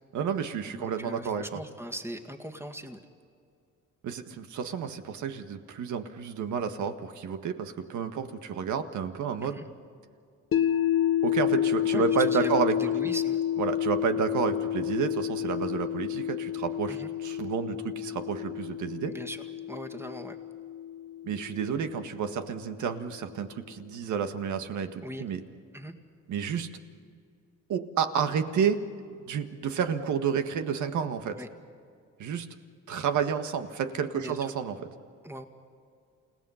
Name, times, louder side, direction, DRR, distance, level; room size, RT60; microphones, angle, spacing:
voice 1, 0.1-1.6 4.0-9.6 11.2-12.8 13.6-19.1 21.2-25.4 26.3-26.7 27.7-28.8 29.3-31.4 32.2-32.5 32.9-34.8, right 7 dB, 75° right, 8 dB, 1.6 m, -30 dB
voice 2, 0.7-3.0 9.4-9.7 11.9-13.4 16.9-17.1 19.1-20.4 25.0-25.2 25.7-25.9 31.4-31.5 34.1-34.5 35.2-35.5, equal, 10° right, 5 dB, 2.0 m, -40 dB
sound 1, 10.5-22.6, left 11 dB, 45° left, 1.1 m, -30 dB
29.5 x 18.0 x 5.7 m, 2.3 s
cardioid pair, 90°, 30 cm